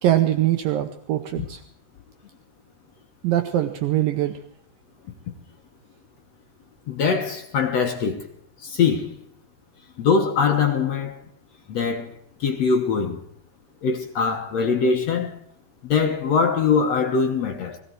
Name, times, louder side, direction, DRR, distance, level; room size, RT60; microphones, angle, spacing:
voice 1, 0.0-1.6 3.2-4.4, right 12 dB, 75° right, 2.4 m, -22 dB
voice 2, 6.9-8.3 8.6-9.2 10.0-11.2 11.7-12.1 12.4-13.2 13.8-15.3 15.8-17.8, left 5 dB, 60° left, 1.8 m, -22 dB
18.5 x 16.5 x 4.6 m
omnidirectional pair, 4.5 m